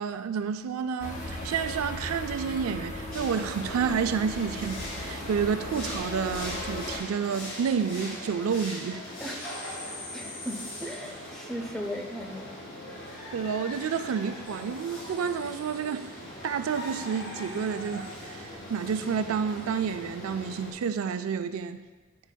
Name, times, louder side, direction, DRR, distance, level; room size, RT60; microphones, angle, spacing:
voice 1, 0.0-9.0 13.3-16.1 16.4-21.8, right 6 dB, 85° right, 10 dB, 0.4 m, -30 dB
sound 1, 1.0-7.0, left 1 dB, 35° left, 0.8 m, -37 dB
sound 2, 3.1-20.7, left 1 dB, 60° left, 2.0 m, -40 dB
voice 2, 9.9-12.6, equal, 5° left, 1 dB, 0.5 m, -37 dB
9.6 x 4.5 x 2.2 m, 1.2 s
head